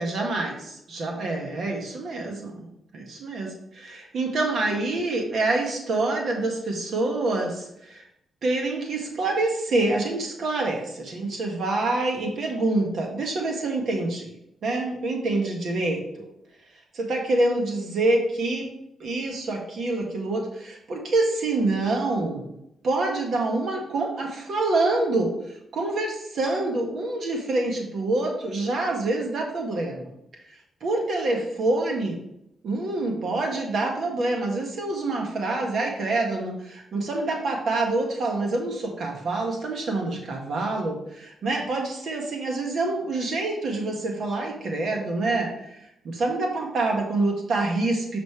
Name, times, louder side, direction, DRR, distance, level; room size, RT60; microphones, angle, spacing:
voice 1, 0.0-8.0 8.4-14.3 14.6-16.3 16.9-18.7 19.0-22.5 22.8-30.1 30.5-32.2 32.6-45.8 46.0-48.2, right 2 dB, 70° right, 1 dB, 1.8 m, -26 dB
6.7 x 6.2 x 3.3 m, 0.79 s
supercardioid pair, 60°, 0 cm